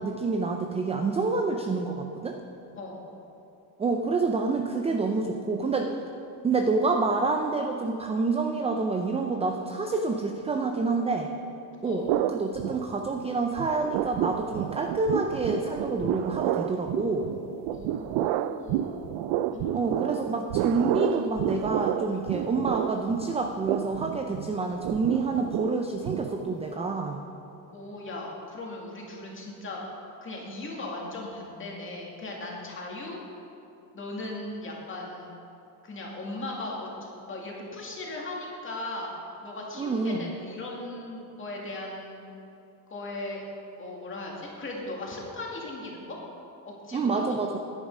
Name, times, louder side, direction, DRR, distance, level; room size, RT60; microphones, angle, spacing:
voice 1, 0.0-2.4 3.8-5.9 6.4-11.3 11.8-17.3 19.7-27.2 39.8-40.3 46.9-47.6, right 3 dB, 15° right, 3 dB, 0.4 m, -28 dB
sound 1, 12.1-13.3 13.6-26.7, right 12 dB, 75° right, 0.5 m, -30 dB
voice 2, 17.7-19.1 19.5-20.3 27.7-29.8 30.2-33.2 33.9-35.3 35.8-39.1 39.4-42.2 42.9-43.4 43.8-46.2 46.7-47.2, left 2 dB, 25° left, -2 dB, 2.2 m, -38 dB
9.7 x 9.7 x 5.4 m, 2.8 s
cardioid pair, 140°, 45 cm